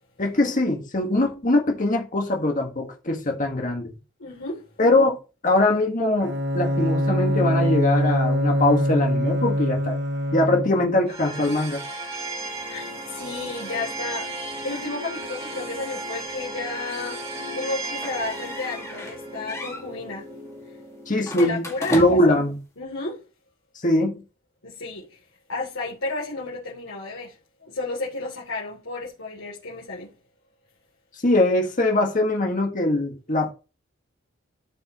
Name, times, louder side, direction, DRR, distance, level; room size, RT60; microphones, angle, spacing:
voice 1, 0.2-3.9 4.8-5.2 5.4-10.0 10.3-11.8 21.1-21.6 21.9-22.6 23.8-24.2 31.2-33.5, left 2 dB, 40° left, 1.6 m, -22 dB
voice 2, 4.2-4.6 12.7-14.3 14.6-17.2 17.5-20.3 20.6-20.7 21.4-22.4 22.8-23.2 24.6-25.2 25.5-30.1, left 3 dB, 90° left, 2.9 m, -32 dB
Bowed string instrument, 6.2-11.0, equal, 55° right, 1.4 m, -23 dB
sound 1, 11.1-22.1, right 2 dB, 30° right, 2.6 m, -35 dB
sound 2, 18.0-19.2 19.5-19.9 21.2-22.4, left 1 dB, 15° left, 2.0 m, -34 dB
12.0 x 5.3 x 3.0 m
head